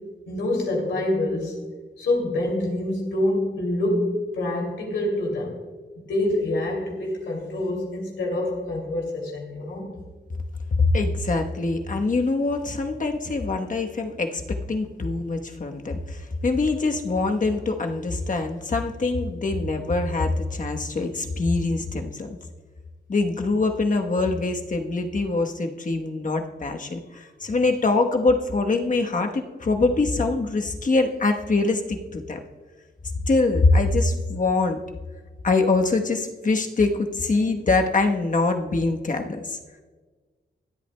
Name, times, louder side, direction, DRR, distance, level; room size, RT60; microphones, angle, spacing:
voice 1, 0.3-1.6 2.0-5.6 6.1-9.9, left 1 dB, 90° left, 0 dB, 2.7 m, -26 dB
voice 2, 10.7-14.4 14.7-22.4 23.1-32.4 33.3-34.8 35.4-39.6, left 3 dB, 45° left, 4 dB, 1.1 m, -24 dB
24.5 x 8.4 x 2.2 m, 1.4 s
cardioid pair, 75°, 19 cm